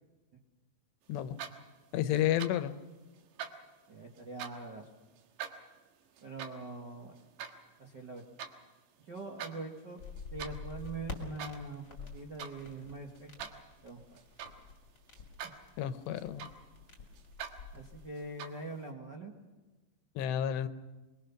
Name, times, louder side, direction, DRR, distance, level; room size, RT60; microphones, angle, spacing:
sound 1, 1.2-1.9 2.2-2.7 3.1-4.7 5.2-8.6 9.0-9.6 9.9-10.6 11.1-11.7 12.0-12.6 12.9-14.7 15.1-15.7 16.0-16.8 17.1-17.6 18.1-18.7, right 8 dB, 75° right, 3.6 m, -45 dB
voice 1, 1.9-2.7 15.8-16.5 20.2-20.7, left 11 dB, 85° left, 11 dB, 3.0 m, -31 dB
voice 2, 3.9-4.9 6.2-7.2 7.8-8.2 9.1-10.0 10.3-13.5 13.8-14.2 15.4-15.5 17.7-19.3, right 3 dB, 60° right, 1 dB, 1.1 m, -43 dB
sound 2, 10.0-18.1, left 5 dB, 30° left, 2.4 m, -48 dB
24.5 x 22.5 x 5.9 m, 1.2 s
omnidirectional pair, 5.0 m